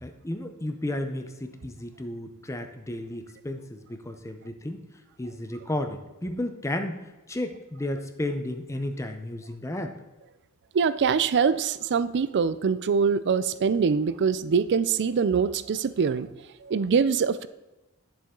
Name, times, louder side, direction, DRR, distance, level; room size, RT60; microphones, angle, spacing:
voice 1, 0.0-4.8 5.2-7.0 7.3-9.9, left 1 dB, 15° left, 6 dB, 0.6 m, -33 dB
voice 2, 10.7-16.3 16.6-17.5, right 6 dB, 50° right, 15 dB, 0.4 m, -24 dB
10.0 x 7.0 x 3.7 m, 1.1 s
head